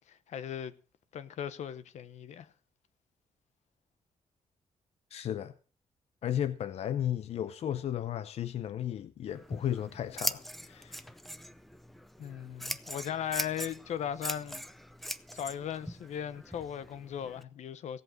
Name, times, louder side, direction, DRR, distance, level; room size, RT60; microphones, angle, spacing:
voice 1, 0.1-0.7 1.1-2.5 12.2-14.6 15.0-18.0, left 9 dB, 80° left, 1.0 m, -38 dB
voice 2, 5.1-5.5 6.2-11.1, left 10 dB, 65° left, 0.6 m, -34 dB
Scissors, 9.3-17.4, equal, ahead, 0.6 m, -41 dB
16.0 x 7.9 x 6.3 m
cardioid pair, 130°, 12 cm